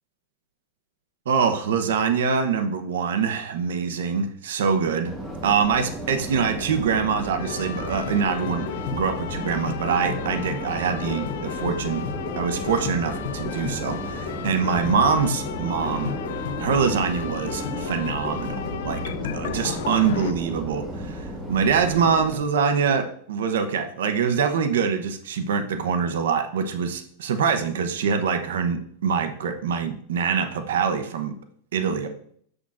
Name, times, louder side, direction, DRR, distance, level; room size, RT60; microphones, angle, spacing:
voice 1, 1.3-5.2 5.4-8.7 8.9-12.0 12.4-16.1 16.6-18.6 18.8-19.0 19.3-31.3 31.7-32.1, right 6 dB, 85° right, 7 dB, 0.8 m, -24 dB
Subway metro underground, 5.1-22.4, right 1 dB, 5° right, 1.1 m, -34 dB
sound 1, 7.4-20.3, left 9 dB, 60° left, 0.4 m, -33 dB
7.2 x 6.3 x 2.5 m, 0.62 s
supercardioid pair, 175°, 0 cm